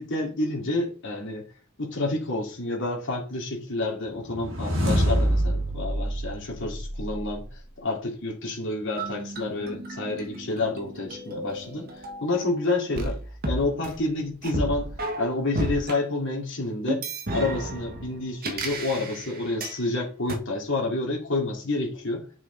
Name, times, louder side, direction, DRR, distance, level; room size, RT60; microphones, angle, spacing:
voice 1, 0.0-1.5 1.8-7.5 7.8-13.2 13.5-17.0 17.3-22.2, left 2 dB, 60° left, -1 dB, 2.7 m, -29 dB
sound 1, 4.2-7.5, equal, 65° right, 3.2 m, -26 dB
sound 2, 9.0-12.5 13.0-16.0 16.9-19.8 20.3-20.4, right 1 dB, 45° right, 1.4 m, -33 dB
9.2 x 6.0 x 4.0 m, 0.37 s
head